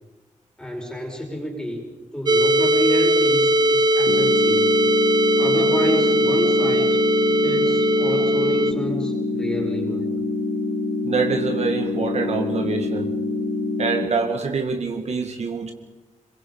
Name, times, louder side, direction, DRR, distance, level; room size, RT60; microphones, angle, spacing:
voice 1, 0.6-1.8 2.1-4.7 5.4-7.0 7.4-10.1, equal, 5° left, 1 dB, 5.3 m, -29 dB
sound 1, 2.3-8.7, right 1 dB, 30° right, 0.7 m, -19 dB
sound 2, 4.1-14.1, left 3 dB, 85° left, 3.6 m, -26 dB
voice 2, 11.0-13.1 13.8-15.7, right 4 dB, 55° right, 4 dB, 2.1 m, -25 dB
27.0 x 22.5 x 5.5 m, 1.1 s
wide cardioid pair, 160°, 13 cm